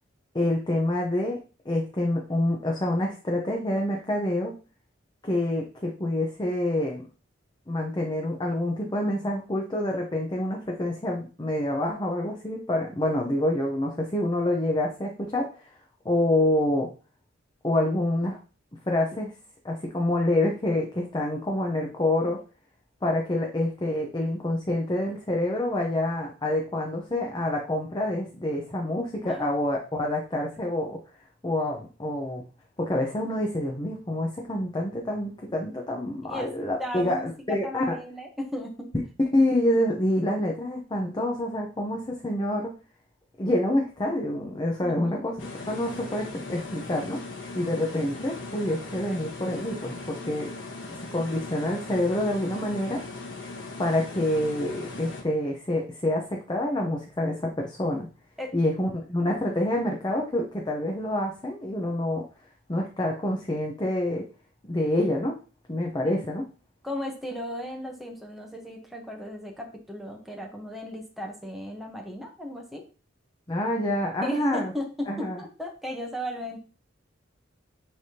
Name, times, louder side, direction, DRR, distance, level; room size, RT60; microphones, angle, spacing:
voice 1, 0.3-1.4 1.6-4.5 5.2-7.0 7.7-15.5 16.0-16.9 17.6-18.4 18.9-19.3 19.6-22.4 23.0-31.0 31.4-32.4 32.8-38.0 39.3-42.7 43.4-45.3 45.7-47.2 47.5-50.5 50.9-53.0 53.8-58.1 58.5-62.2 62.7-64.2 64.7-65.4 65.7-66.5 73.5-74.7 75.1-75.4, left 1 dB, 20° left, 0 dB, 0.8 m, -27 dB
voice 2, 29.2-29.5 36.3-36.5 36.8-37.3 37.6-38.9 44.8-45.2 58.4-58.5 66.0-66.1 66.8-72.8 74.2-76.6, left 1 dB, ahead, 0 dB, 1.0 m, -36 dB
sound 1, 45.4-55.2, left 3 dB, 75° left, 1.3 m, -39 dB
9.7 x 3.5 x 2.9 m, 0.35 s
head